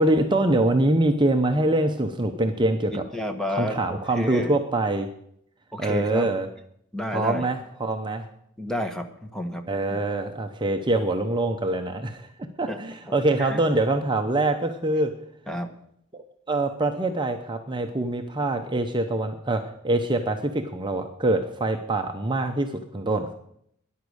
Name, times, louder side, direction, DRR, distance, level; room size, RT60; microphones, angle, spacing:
voice 1, 0.0-3.0 3.5-5.1 5.8-6.5 7.1-8.2 9.7-12.3 12.6-15.1 16.1-23.3, right 2 dB, 20° right, 5 dB, 0.8 m, -24 dB
voice 2, 2.9-4.5 5.7-6.3 6.9-7.5 8.6-9.6 9.9-10.0 12.7-12.8 13.1-13.6 15.5-15.7, left 1 dB, 5° left, 6 dB, 1.2 m, -31 dB
13.5 x 10.5 x 6.4 m, 0.72 s
head